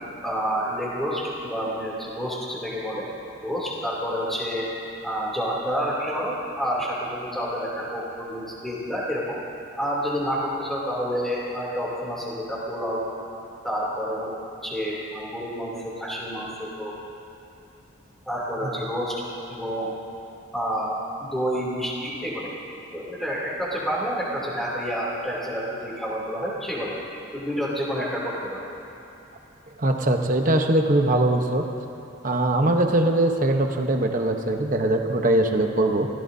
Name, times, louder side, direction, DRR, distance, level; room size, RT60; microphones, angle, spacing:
voice 1, 0.2-3.1 3.4-4.7 5.0-9.4 9.8-13.0 13.6-14.3 14.6-16.9 18.3-19.2 19.5-19.9 20.5-22.5 22.9-26.9 27.3-28.7, equal, ahead, -6 dB, 3.0 m, -29 dB
voice 2, 29.8-31.7 32.2-36.1, right 1 dB, 40° right, 3 dB, 1.0 m, -21 dB
26.5 x 17.0 x 2.8 m, 2.8 s
head